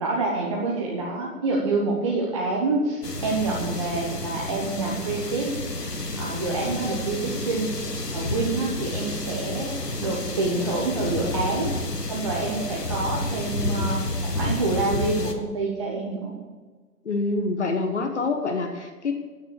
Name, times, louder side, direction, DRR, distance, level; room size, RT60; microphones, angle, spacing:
voice 1, 0.0-5.5 6.2-7.8 8.1-9.7 10.0-11.7 12.1-16.4, right 3 dB, 20° right, -3 dB, 1.0 m, -27 dB
sound 1, 3.0-15.3, left 2 dB, 85° left, 1.5 m, -30 dB
voice 2, 17.0-19.1, left 3 dB, 45° left, 5 dB, 1.3 m, -26 dB
9.2 x 9.2 x 6.6 m, 1.4 s
figure-of-eight pair, 140°, 47 cm